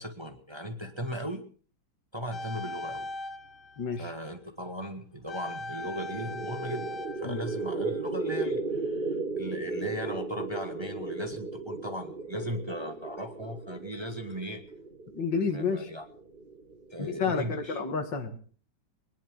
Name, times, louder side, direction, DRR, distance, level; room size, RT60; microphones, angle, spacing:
voice 1, 0.0-1.4 2.1-3.1 4.0-6.9 7.2-14.6 15.5-16.0 16.9-17.8, equal, 15° right, 5 dB, 1.5 m, -37 dB
sound 1, 2.3-4.3 5.3-8.4 8.7-8.8, left 2 dB, 35° left, 1.1 m, -40 dB
voice 2, 3.8-4.1 7.2-7.4 15.1-15.9 17.0-18.4, left 5 dB, 75° left, 6 dB, 2.7 m, -30 dB
sound 2, 5.8-17.3, right 3 dB, 30° right, 1.3 m, -36 dB
22.0 x 10.5 x 6.2 m, 0.43 s
omnidirectional pair, 2.0 m